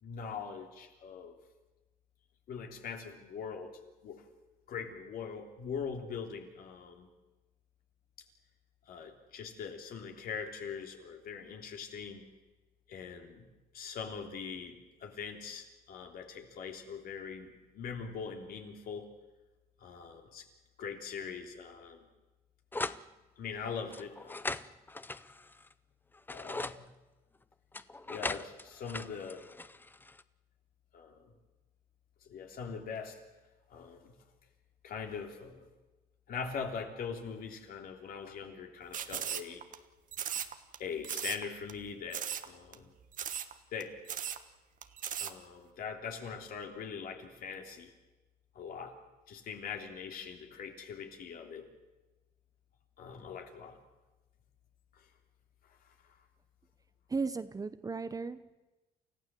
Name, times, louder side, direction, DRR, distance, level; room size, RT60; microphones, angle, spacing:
voice 1, 0.0-1.4 2.5-4.3 4.7-7.1 8.9-12.2 12.9-19.1 19.8-20.4 20.8-22.0 23.4-24.6 26.3-26.9 28.0-29.5 30.9-31.3 32.2-33.2 33.7-34.2 34.8-35.7 36.3-39.6 40.8-42.9 43.7-44.0 45.2-47.9 48.5-49.0 49.3-51.7 53.0-53.8 54.9-55.0, left 6 dB, 60° left, 3 dB, 3.4 m, -42 dB
sound 1, 22.7-23.0 23.9-25.7 26.1-26.8 27.7-30.2, left 2 dB, 10° left, 0.6 m, -40 dB
sound 2, 38.9-39.8 40.1-40.8 41.0-41.4 41.7-41.8 42.1-42.5 42.7-42.8 43.1-43.5 43.8-43.9 44.1-44.4 44.8-45.3, right 9 dB, 50° right, 1.3 m, -37 dB
voice 2, 57.1-58.5, right 4 dB, 20° right, 12 dB, 0.9 m, -36 dB
29.0 x 15.0 x 7.7 m, 1.1 s
cardioid pair, 110°, 17 cm